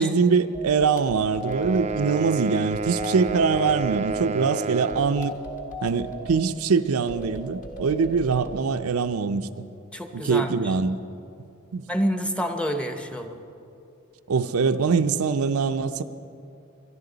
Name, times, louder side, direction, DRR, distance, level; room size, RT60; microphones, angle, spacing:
voice 1, 0.0-5.3 5.8-9.5 10.1-11.0 11.7-11.8 14.3-16.0, right 5 dB, 85° right, 9 dB, 0.5 m, -23 dB
sound 1, 0.5-2.1 2.7-4.2 4.9-6.4 7.1-8.6, right 1 dB, 35° left, 1.3 m, -37 dB
sound 2, 1.4-5.3, right 3 dB, 30° right, 0.4 m, -30 dB
voice 2, 9.9-10.7 11.9-13.4, equal, 5° left, 6 dB, 0.8 m, -28 dB
22.5 x 11.5 x 4.0 m, 2.6 s
head